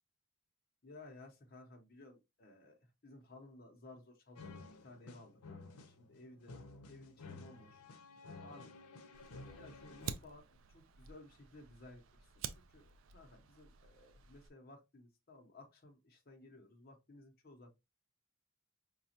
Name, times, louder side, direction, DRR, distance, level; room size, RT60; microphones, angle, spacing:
voice 1, 0.8-6.6 6.9-7.8 8.4-8.8 9.6-17.7, left 2 dB, 40° left, 0.7 m, -57 dB
sound 1, 4.4-10.1, left 3 dB, 85° left, 0.6 m, -53 dB
Fire, 9.1-14.5, right 7 dB, 60° right, 0.4 m, -49 dB
4.9 x 2.3 x 2.7 m
head